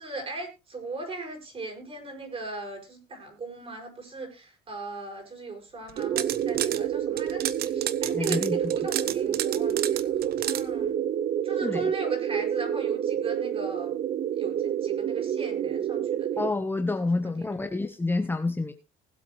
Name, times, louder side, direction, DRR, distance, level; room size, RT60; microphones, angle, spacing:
voice 1, 0.0-11.0 11.4-13.9 14.3-16.5 17.2-17.5, right 3 dB, 35° right, 3 dB, 6.1 m, -38 dB
sound 1, 5.9-6.8 7.2-10.6, right 12 dB, 65° right, 0.9 m, -31 dB
sound 2, 6.0-16.5, right 9 dB, 50° right, 0.5 m, -28 dB
voice 2, 8.1-8.6 11.6-11.8 16.4-18.7, left 3 dB, 10° left, 6 dB, 1.1 m, -28 dB
20.0 x 7.8 x 3.2 m, 0.29 s
cardioid pair, 110°, 17 cm